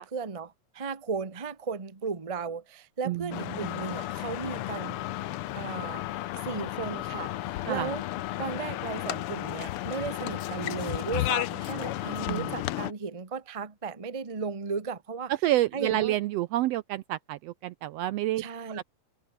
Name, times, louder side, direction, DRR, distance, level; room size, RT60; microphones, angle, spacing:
voice 1, 0.0-5.0 5.5-6.0 6.4-7.3 7.7-8.1 8.4-15.3 15.7-16.2 18.4-18.8, right 5 dB, 30° right, 0.6 m, -35 dB
voice 2, 3.1-3.7 7.7-7.9 12.3-12.5 15.3-18.8, right 15 dB, 80° right, 1.5 m, -29 dB
sound 1, 3.3-12.9, left 14 dB, 80° left, 1.3 m, -33 dB
omnidirectional pair, 3.4 m